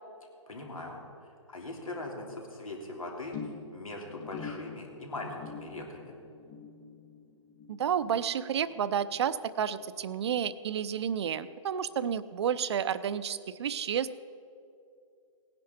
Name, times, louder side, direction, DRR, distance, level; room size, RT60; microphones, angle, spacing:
voice 1, 0.5-1.0 1.5-3.4 3.7-6.1, left 2 dB, 90° left, 0 dB, 3.0 m, -40 dB
sound 1, 3.3-9.9 10.2-10.6 10.9-11.0, left 5 dB, 35° left, 2.9 m, -47 dB
voice 2, 7.7-14.1, right 8 dB, 55° right, 14 dB, 0.6 m, -31 dB
17.5 x 10.5 x 4.3 m, 2.5 s
hypercardioid pair, 145°, 17 cm